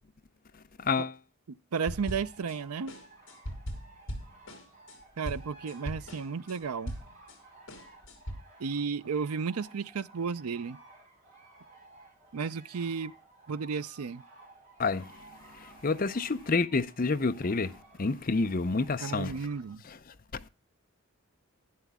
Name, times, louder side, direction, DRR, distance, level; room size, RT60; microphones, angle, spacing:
voice 1, 0.8-1.1 14.8-15.1 15.5-19.3 19.8-20.0 20.3-20.5, left 4 dB, 40° left, 0.6 m, -29 dB
voice 2, 1.7-2.9 5.2-7.0 8.6-10.8 12.3-13.1 13.5-14.2 19.0-19.8, right 5 dB, 90° right, 0.5 m, -33 dB
sound 1, 1.9-2.6 2.9-7.4 7.7-8.3, equal, 55° left, 2.7 m, -40 dB
sound 2, 1.9-19.8, right 2 dB, 35° right, 6.6 m, -56 dB
12.0 x 10.0 x 3.5 m
head